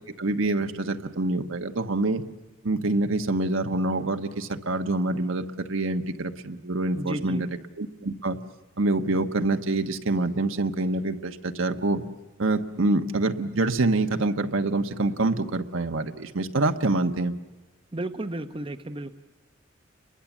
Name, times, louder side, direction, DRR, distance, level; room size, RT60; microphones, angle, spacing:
voice 1, 0.2-2.2 2.6-7.5 7.8-8.4 8.8-12.0 12.4-17.3, right 2 dB, 80° right, 6 dB, 1.2 m, -26 dB
voice 2, 6.9-7.4 17.9-19.1, right 1 dB, 25° right, 7 dB, 0.8 m, -33 dB
30.0 x 22.5 x 7.3 m, 1.1 s
head